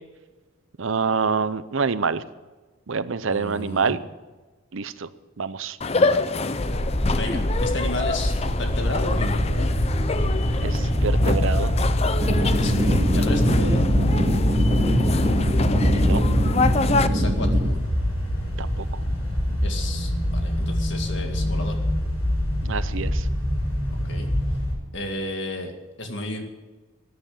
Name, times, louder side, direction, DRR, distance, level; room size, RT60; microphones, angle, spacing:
voice 1, 0.8-2.2 2.9-4.0 4.7-5.1 5.4-5.8 10.6-11.7 15.8-16.2 18.6-19.0 22.6-23.3, right 5 dB, 70° right, 14 dB, 0.7 m, -26 dB
voice 2, 3.3-4.0 5.9-6.3 7.0-9.8 12.5-13.9 17.1-17.8 19.6-21.7 24.1-24.3 24.9-25.7 26.0-26.5, left 1 dB, 55° left, 4 dB, 2.1 m, -32 dB
sound 1, 5.8-17.1, left 3 dB, 30° left, 0.5 m, -27 dB
sound 2, 6.6-24.7, equal, 90° left, 6.6 m, -24 dB
sound 3, 12.2-17.7, right 1 dB, 30° right, 1.8 m, -24 dB
15.0 x 9.8 x 8.8 m, 1.2 s
head